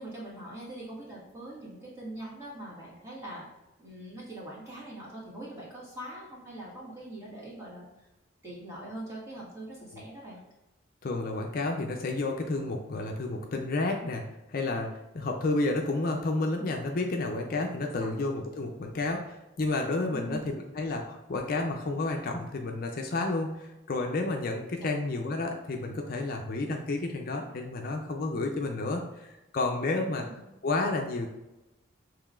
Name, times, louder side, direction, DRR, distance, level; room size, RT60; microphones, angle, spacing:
voice 1, 0.0-3.4 3.8-8.1 8.4-10.4 18.0-18.2 20.1-20.6 24.8-24.9 30.0-30.4, right 1 dB, 15° right, -6 dB, 1.4 m, -42 dB
voice 2, 11.0-30.3 30.6-31.3, left 2 dB, 45° left, 2 dB, 0.4 m, -31 dB
6.6 x 3.1 x 2.4 m, 0.99 s
head